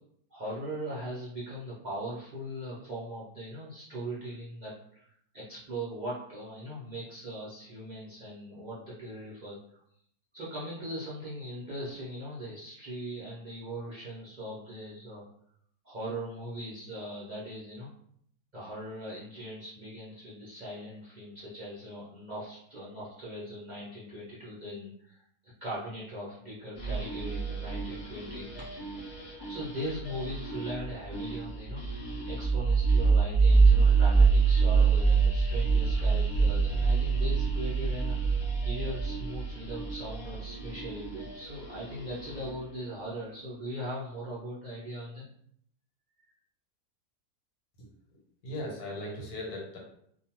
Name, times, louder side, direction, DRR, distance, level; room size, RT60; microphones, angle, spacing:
voice 1, 0.3-5.1 5.3-9.6 10.3-15.2 15.8-17.9 18.5-25.2 25.6-28.8 29.4-38.4 38.6-45.2, equal, 45° right, -8 dB, 0.6 m, -40 dB
sound 1, 26.7-42.7, right 4 dB, 55° left, 1.0 m, -26 dB
voice 2, 47.8-49.8, left 1 dB, 85° left, -2 dB, 1.4 m, -39 dB
2.6 x 2.3 x 2.9 m, 0.68 s
omnidirectional pair, 1.6 m